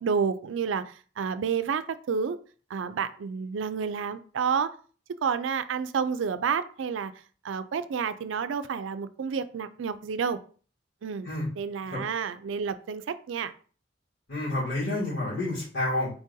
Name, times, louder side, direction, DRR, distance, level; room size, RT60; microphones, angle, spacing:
voice 1, 0.0-2.4 2.7-4.7 5.2-7.1 7.4-10.4 11.0-11.3 11.6-13.5, right 6 dB, 85° right, 12 dB, 0.4 m, -30 dB
voice 2, 14.3-16.1, left 2 dB, 75° left, -10 dB, 2.3 m, -29 dB
4.6 x 3.7 x 2.7 m, 0.41 s
head